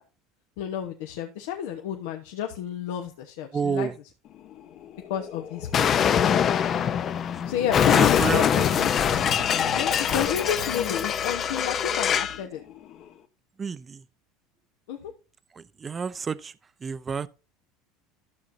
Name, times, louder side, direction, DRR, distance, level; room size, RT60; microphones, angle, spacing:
voice 1, 0.6-4.1 5.1-6.6 7.5-9.0 9.7-12.6 14.9-15.1, left 9 dB, 80° left, 1.1 m, -31 dB
voice 2, 3.5-3.9 7.9-8.6 13.6-14.0 15.5-16.5 16.8-17.3, right 5 dB, 25° right, 0.6 m, -30 dB
sound 1, 4.2-13.2, left 7 dB, 50° left, 1.3 m, -39 dB
Explosion, 5.7-12.4, left 8 dB, 35° left, 0.6 m, -23 dB
13.0 x 7.2 x 2.7 m
supercardioid pair, 125°, 0 cm